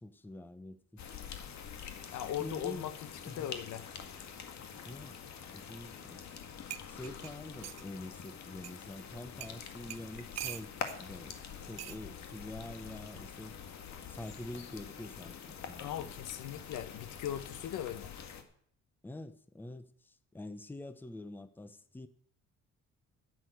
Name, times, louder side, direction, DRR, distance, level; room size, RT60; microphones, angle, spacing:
voice 1, 0.0-1.0 2.4-2.9 3.3-3.5 4.8-5.2 5.5-6.2 6.9-11.4 11.7-13.6 14.1-16.1 19.0-22.1, left 1 dB, 5° left, 0.7 m, -46 dB
sound 1, 1.0-18.4, left 7 dB, 65° left, 2.0 m, -46 dB
voice 2, 2.1-3.9 15.8-18.1, left 11 dB, 80° left, 1.2 m, -39 dB
sound 2, 6.3-6.4 6.7-7.9 8.6-8.7 9.4-9.6 9.9-11.0 11.8-12.0 13.1-13.4, right 14 dB, 60° right, 0.6 m, -44 dB
10.5 x 9.4 x 7.9 m
cardioid pair, 145°, 30 cm